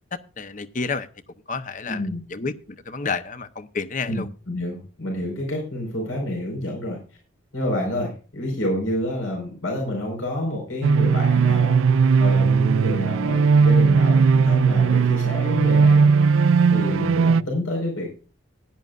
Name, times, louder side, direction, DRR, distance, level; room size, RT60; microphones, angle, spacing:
voice 1, 0.1-1.1 1.5-2.0 2.3-2.5 2.9-4.3, left 4 dB, 40° left, 0.8 m, -29 dB
voice 2, 1.8-2.2 4.0-7.0 7.5-11.8 12.2-16.1 16.7-18.1, left 1 dB, 85° left, 4.8 m, -28 dB
sound 1, 10.8-17.4, right 5 dB, 80° right, 0.4 m, -18 dB
16.5 x 10.5 x 2.5 m
head